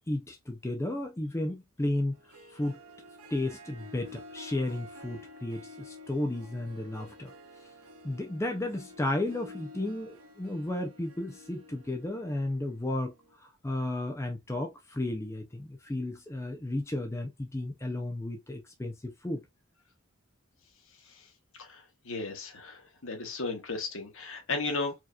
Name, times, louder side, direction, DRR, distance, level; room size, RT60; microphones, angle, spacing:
voice 1, 0.1-2.2 2.5-2.8 3.3-7.3 8.0-13.1 13.6-19.4, left 1 dB, 15° left, 0.5 m, -33 dB
Harp, 2.1-13.3, left 1 dB, 85° right, 1.0 m, -50 dB
voice 2, 21.0-24.9, left 3 dB, 60° left, 1.2 m, -35 dB
4.7 x 2.8 x 2.3 m
head